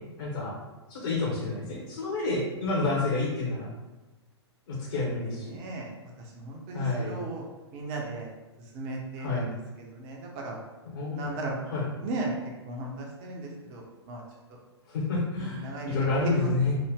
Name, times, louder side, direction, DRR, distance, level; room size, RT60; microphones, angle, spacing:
voice 1, 0.2-0.5 0.9-3.7 4.7-5.6 6.7-7.1 9.2-9.5 10.8-11.9 14.9-16.8, left 3 dB, 50° left, -4 dB, 0.8 m, -29 dB
voice 2, 5.5-5.9 6.4-7.4 7.7-8.3 8.7-9.5 10.0-10.6 11.1-11.6 12.0-12.3 12.7-13.8 14.1-14.2 15.6-16.0 16.2-16.4, right 2 dB, 30° right, 0 dB, 0.7 m, -35 dB
3.8 x 2.0 x 3.4 m, 1.1 s
figure-of-eight pair, 110°, 15 cm